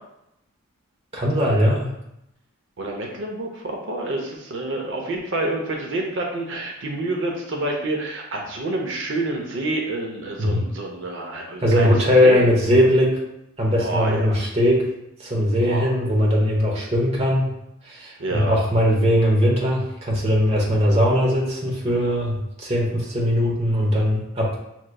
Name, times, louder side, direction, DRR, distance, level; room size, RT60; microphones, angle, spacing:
voice 1, 1.1-1.9 10.4-10.6 11.6-13.2 13.6-14.9 15.2-17.5 17.8-24.6, equal, 30° right, -3 dB, 0.9 m, -20 dB
voice 2, 2.8-12.4 13.8-14.4 15.6-15.9 18.2-18.6, right 2 dB, 55° right, 0 dB, 0.6 m, -28 dB
6.3 x 3.0 x 2.2 m, 0.83 s
head